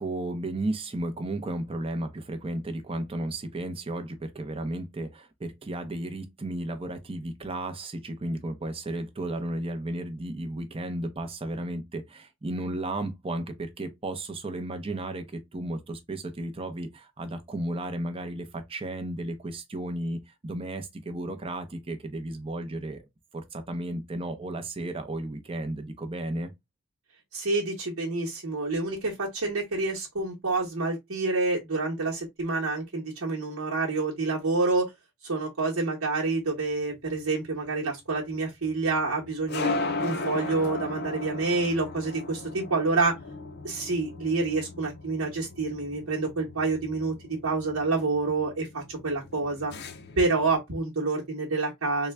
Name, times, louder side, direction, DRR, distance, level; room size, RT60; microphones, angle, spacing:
voice 1, 0.0-23.0 23.3-26.5, right 1 dB, 25° right, 0.6 m, -34 dB
voice 2, 27.3-34.9 35.2-39.7 40.0-43.2 43.6-47.1 47.4-49.7 50.2-52.1, right 3 dB, 70° right, 1.0 m, -28 dB
sound 1, 36.6-50.6, left 3 dB, 50° left, 0.5 m, -37 dB
3.7 x 2.2 x 3.2 m
head